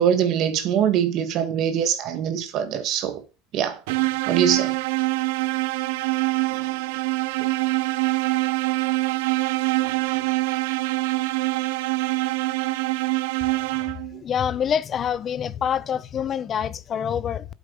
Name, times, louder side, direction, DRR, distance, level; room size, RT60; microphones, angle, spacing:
voice 1, 0.0-3.2 3.5-3.8 4.3-4.7, right 9 dB, 40° right, 1.6 m, -23 dB
sound 1, 3.9-14.2, right 21 dB, 80° right, 0.5 m, -24 dB
voice 2, 14.2-17.5, left 8 dB, 25° left, 0.7 m, -26 dB
8.2 x 8.1 x 5.2 m
cardioid pair, 175°, 0 cm